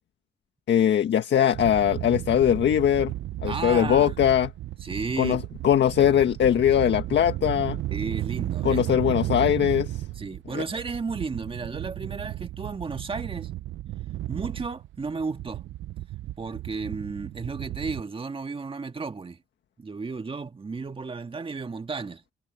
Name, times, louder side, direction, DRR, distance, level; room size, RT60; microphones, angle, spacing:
voice 1, 0.7-3.1 3.4-4.5 5.2-7.8 8.6-10.0 10.5-10.6, left 9 dB, 60° left, 1.6 m, -21 dB
sound 1, 1.5-18.0, right 14 dB, 70° right, 0.8 m, -34 dB
voice 2, 3.4-4.1 4.8-5.4 7.9-9.1 10.2-13.5 14.3-15.6 16.4-19.4 19.8-22.2, right 4 dB, 25° right, 1.8 m, -33 dB
cardioid pair, 90°, 20 cm